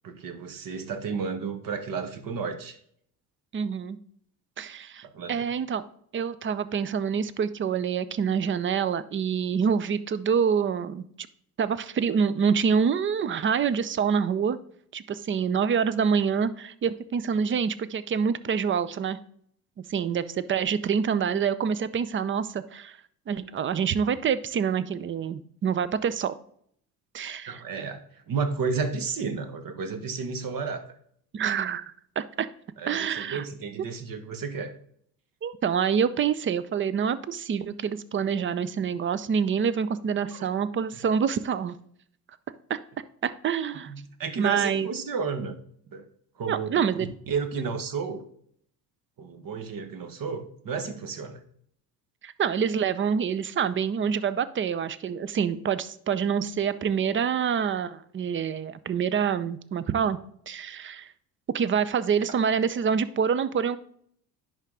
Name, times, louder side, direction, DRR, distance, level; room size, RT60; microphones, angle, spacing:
voice 1, 0.0-2.8 5.0-5.5 27.5-30.9 32.8-34.7 40.4-40.5 43.9-45.6 45.9-46.1 46.4-48.2 49.2-51.4, right 5 dB, 45° right, 9 dB, 1.2 m, -32 dB
voice 2, 3.5-4.0 4.6-5.8 6.1-11.0 11.6-14.6 14.9-19.2 19.9-23.0 23.3-26.3 27.1-27.6 31.3-32.5 32.9-33.4 35.4-41.7 42.7-42.8 43.2-43.9 44.4-44.9 46.5-47.1 52.2-60.2 60.5-61.1 61.5-63.8, right 7 dB, 25° right, 15 dB, 0.5 m, -26 dB
10.5 x 3.7 x 3.8 m, 0.65 s
hypercardioid pair, 60°, 48 cm